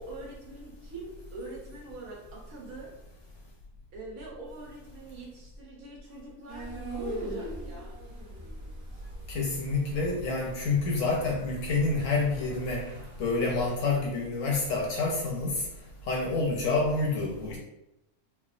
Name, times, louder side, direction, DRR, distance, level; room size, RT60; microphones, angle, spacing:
voice 1, 0.0-2.9 3.9-7.9, right 2 dB, 70° right, -2 dB, 1.2 m, -43 dB
sound 1, 6.5-13.7, equal, 55° right, 0.9 m, -41 dB
voice 2, 9.3-12.8 13.2-15.6 16.1-17.6, left 3 dB, 70° left, -1 dB, 0.9 m, -28 dB
3.2 x 2.1 x 2.4 m, 0.88 s
omnidirectional pair, 1.6 m